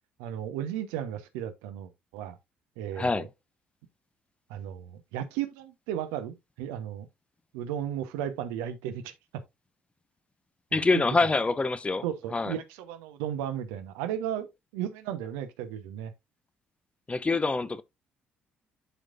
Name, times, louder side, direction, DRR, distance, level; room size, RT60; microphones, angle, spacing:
voice 1, 0.2-2.4 2.8-3.3 4.5-7.1 7.5-9.4 10.7-11.3 12.0-14.5 14.7-16.1, right 10 dB, 70° right, 1.0 m, -35 dB
voice 2, 10.7-12.0 12.3-12.5 17.1-17.8, left 3 dB, 20° left, 0.8 m, -25 dB
11.0 x 4.8 x 2.5 m
figure-of-eight pair, 45°, 5 cm